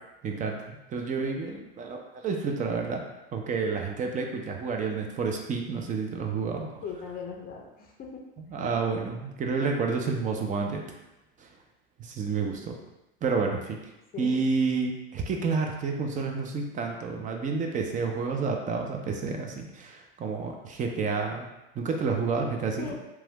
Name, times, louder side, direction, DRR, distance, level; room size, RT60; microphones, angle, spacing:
voice 1, 0.2-3.0 3.3-6.7 8.5-10.8 11.4-11.5 12.0-12.7 13.2-13.8 14.2-21.5 21.8-22.9, right 4 dB, 25° right, 2 dB, 0.5 m, -29 dB
voice 2, 6.8-8.2 8.5-8.6 9.6-9.7 14.1-14.5 22.8-23.0, left 5 dB, 30° left, 1 dB, 0.5 m, -39 dB
3.0 x 2.3 x 2.9 m, 0.94 s
hypercardioid pair, 90°, 29 cm